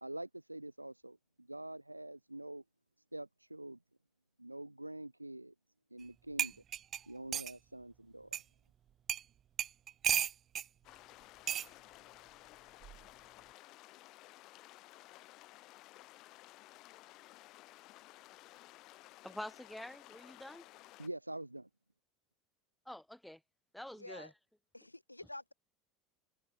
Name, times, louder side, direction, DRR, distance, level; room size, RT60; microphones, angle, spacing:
voice 1, 0.0-2.6 3.1-3.8 4.4-5.5 5.9-6.5 7.1-8.4 21.0-21.7, right 1 dB, 85° right, 0.8 m, -45 dB
sound 1, 6.0-6.1 6.4-7.6 8.3-8.4 9.1-9.3 9.6-10.7 11.5-11.7 12.8-13.1, right 10 dB, 35° right, 0.9 m, -34 dB
sound 2, 10.8-21.1, left 19 dB, 45° left, 3.5 m, -56 dB
voice 2, 19.2-20.6 22.9-23.4 23.7-24.3, left 1 dB, 5° left, 4.2 m, -47 dB
voice 3, 24.0-24.3 24.7-25.5, left 1 dB, 85° left, 3.4 m, -48 dB
figure-of-eight pair, 75°, 0 cm